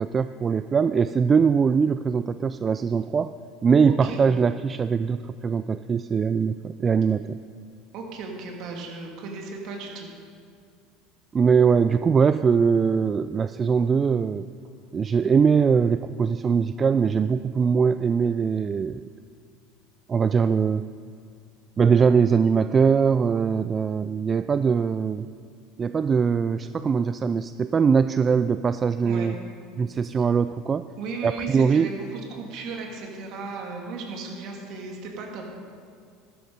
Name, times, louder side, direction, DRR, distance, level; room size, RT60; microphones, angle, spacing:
voice 1, 0.0-3.3 3.6-7.4 11.3-14.5 14.9-19.1 20.1-20.8 21.8-25.3 25.8-29.3 29.8-30.8 31.2-31.9, right 6 dB, 30° right, 12 dB, 0.3 m, -22 dB
voice 2, 3.8-4.2 7.9-10.1 29.0-29.3 31.0-35.4, right 4 dB, 60° right, 1 dB, 2.8 m, -35 dB
13.0 x 11.0 x 5.3 m, 2.3 s
hypercardioid pair, 85°, 0 cm